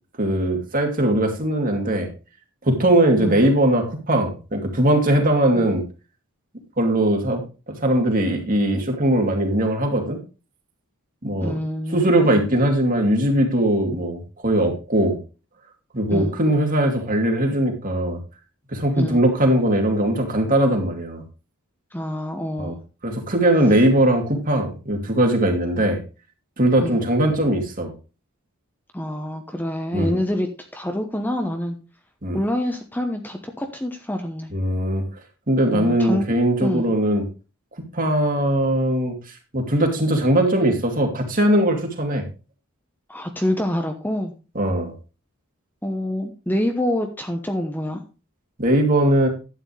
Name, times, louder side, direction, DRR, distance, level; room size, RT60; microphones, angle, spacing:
voice 1, 0.2-2.1 2.6-5.8 6.8-10.2 11.2-11.6 11.9-15.2 15.9-18.2 18.7-21.2 22.6-22.7 23.0-26.0 26.6-27.9 29.9-30.2 32.2-32.4 34.5-35.0 35.5-37.2 37.9-39.1 39.5-42.2 44.5-44.9 48.6-49.3, right 1 dB, 40° right, 3 dB, 2.7 m, -20 dB
voice 2, 11.4-12.5 16.1-16.4 19.0-19.2 21.9-22.8 26.8-27.0 28.9-31.8 32.3-34.5 35.7-36.3 36.6-36.9 43.1-44.3 45.8-48.0, left 1 dB, 10° left, 5 dB, 1.0 m, -26 dB
11.5 x 9.1 x 3.3 m, 0.32 s
head